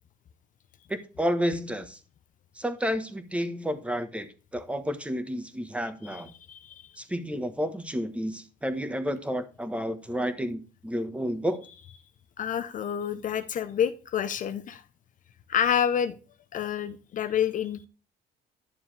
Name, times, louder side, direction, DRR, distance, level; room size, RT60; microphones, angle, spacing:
voice 1, 0.9-2.0 2.6-6.3 7.0-11.6, equal, 5° right, 1.3 m, -31 dB
voice 2, 12.4-14.8 15.5-16.2 16.5-17.9, left 9 dB, 50° left, 0.8 m, -28 dB
11.0 x 7.1 x 3.4 m
cardioid pair, 110°, 17 cm